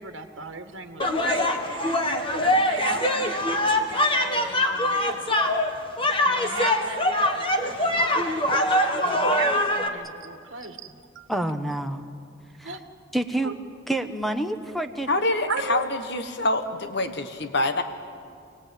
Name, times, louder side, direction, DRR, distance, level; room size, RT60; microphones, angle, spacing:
voice 1, 0.0-5.5 6.3-11.3 12.6-12.8 13.4-13.5 15.5-15.8, right 4 dB, 65° right, 6 dB, 1.7 m, -37 dB
sound 1, 1.0-9.9, left 1 dB, 25° left, 1.5 m, -23 dB
voice 2, 11.3-12.0 12.6-12.7 13.1-13.5 13.9-15.1, right 1 dB, ahead, 8 dB, 1.0 m, -27 dB
voice 3, 15.1-17.8, left 2 dB, 55° left, 8 dB, 1.4 m, -26 dB
28.0 x 18.5 x 9.1 m, 2.3 s
head